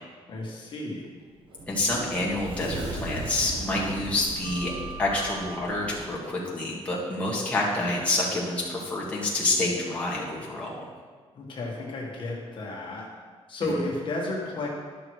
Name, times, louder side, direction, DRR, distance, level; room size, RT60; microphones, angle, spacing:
voice 1, 0.3-1.1 11.3-13.0 13.5-14.7, left 2 dB, 45° left, -3 dB, 1.6 m, -32 dB
Sliding door, 1.2-6.0, right 2 dB, 50° right, 1.3 m, -37 dB
voice 2, 1.7-4.7 5.0-10.8 13.7-13.8, left 2 dB, 10° left, -5 dB, 1.8 m, -28 dB
11.0 x 6.3 x 4.7 m, 1.5 s
cardioid pair, 170°, 11 cm